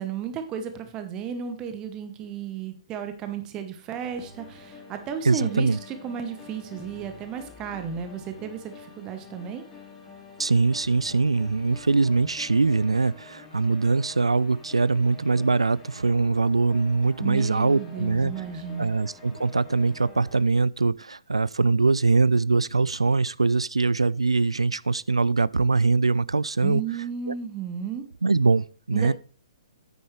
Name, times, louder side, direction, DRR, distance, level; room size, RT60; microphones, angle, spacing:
voice 1, 0.0-9.6 17.2-18.9 26.6-28.0 28.9-29.1, right 7 dB, 20° right, 1.0 m, -34 dB
sound 1, 4.0-20.4, left 4 dB, 15° left, 2.3 m, -47 dB
voice 2, 5.2-5.8 10.4-18.3 18.8-26.8 27.3-27.4 28.2-29.1, right 3 dB, 75° right, 0.3 m, -22 dB
9.2 x 9.0 x 3.2 m
figure-of-eight pair, 120°, 3 cm